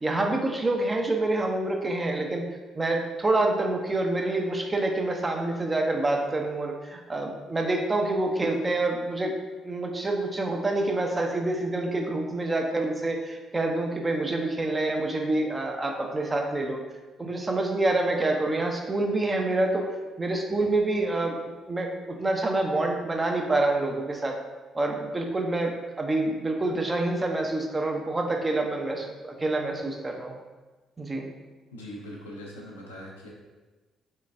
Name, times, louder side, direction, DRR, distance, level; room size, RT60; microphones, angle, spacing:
voice 1, 0.0-2.4 2.7-9.3 9.6-16.8 17.2-19.9 20.2-24.4 24.7-30.4 31.0-31.3, right 2 dB, 25° right, 2 dB, 0.6 m, -27 dB
voice 2, 31.7-33.3, equal, 90° left, -3 dB, 0.6 m, -41 dB
3.7 x 3.2 x 2.5 m, 1.2 s
hypercardioid pair, 45°, 0 cm